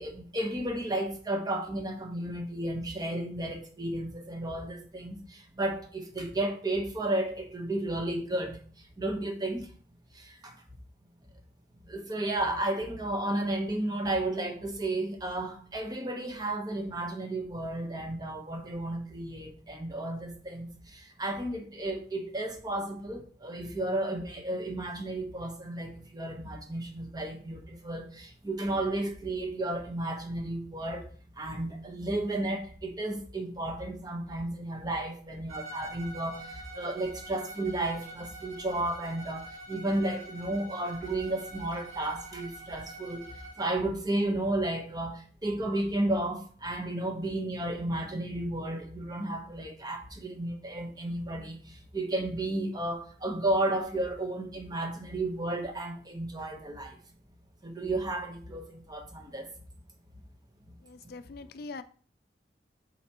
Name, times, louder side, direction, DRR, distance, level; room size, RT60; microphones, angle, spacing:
voice 1, 0.0-9.7 10.1-10.5 11.8-31.1 31.4-57.0 57.6-59.5, right 1 dB, 25° right, 1.1 m, -33 dB
Bowed string instrument, 35.5-43.8, right 1 dB, 40° right, 2.2 m, -46 dB
voice 2, 60.8-61.8, left 3 dB, 60° left, 0.5 m, -42 dB
8.1 x 4.2 x 3.0 m
head